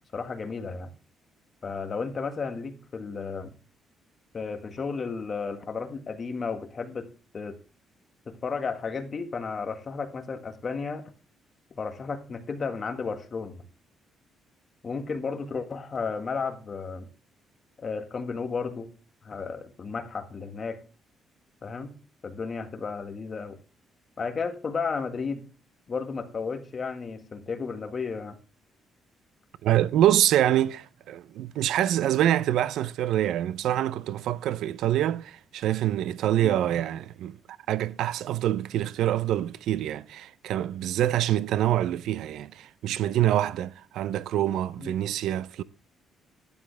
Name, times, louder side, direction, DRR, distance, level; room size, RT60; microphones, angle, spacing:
voice 1, 0.1-0.9 1.6-3.5 4.3-7.1 7.3-7.6 8.3-11.1 11.7-13.6 14.8-17.1 17.8-18.9 19.2-20.8 21.6-21.9 22.2-23.6 24.2-25.5 25.9-28.4 36.4-36.6 44.8-44.9, left 5 dB, 30° left, 1.7 m, -33 dB
voice 2, 29.6-37.4 37.7-45.6, right 12 dB, 85° right, 0.6 m, -25 dB
12.5 x 11.0 x 3.4 m
cardioid pair, 155°, 0 cm